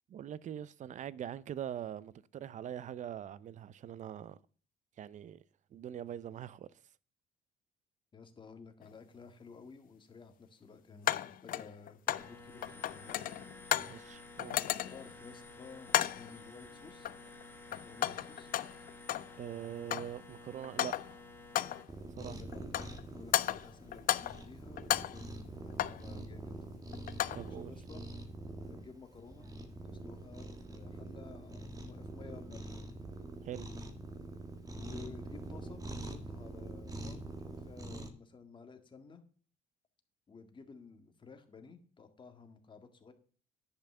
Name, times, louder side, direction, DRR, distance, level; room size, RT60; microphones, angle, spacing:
voice 1, 0.1-4.4 5.0-5.4 5.7-6.7 13.8-14.6 19.4-20.9 22.2-22.4 27.3-27.7 33.4-33.7, right 10 dB, 45° right, 0.6 m, -43 dB
voice 2, 8.1-13.3 14.9-17.1 17.7-18.5 22.1-26.5 27.5-28.1 28.6-29.5 29.8-32.8 34.7-39.2 40.3-43.1, left 5 dB, 30° left, 1.8 m, -54 dB
sound 1, 8.8-8.9 11.1-12.3 12.6-14.0 14.4-15.1 15.9-16.3 17.0-17.4 17.7-19.3 19.6-20.2 20.6-21.2 21.6-21.9 22.5-23.0 23.3-24.5 24.8-26.1 26.9-27.5, left 12 dB, 55° left, 0.5 m, -34 dB
sound 2, 12.1-21.8, left 3 dB, 10° left, 1.6 m, -52 dB
Cat, 21.9-38.1, right 2 dB, 20° right, 1.7 m, -45 dB
10.5 x 5.7 x 6.8 m
cardioid pair, 110°, 17 cm